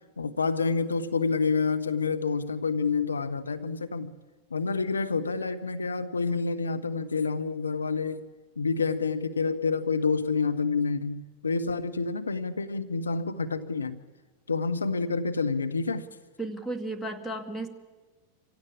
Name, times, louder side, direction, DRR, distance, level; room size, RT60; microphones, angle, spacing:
voice 1, 0.2-4.1 4.5-8.3 8.6-14.0 14.5-16.1, left 4 dB, 75° left, 9 dB, 0.8 m, -28 dB
voice 2, 16.4-17.7, right 2 dB, 5° left, 4 dB, 2.2 m, -34 dB
26.0 x 16.5 x 8.6 m, 1.3 s
figure-of-eight pair, 90°, 0 cm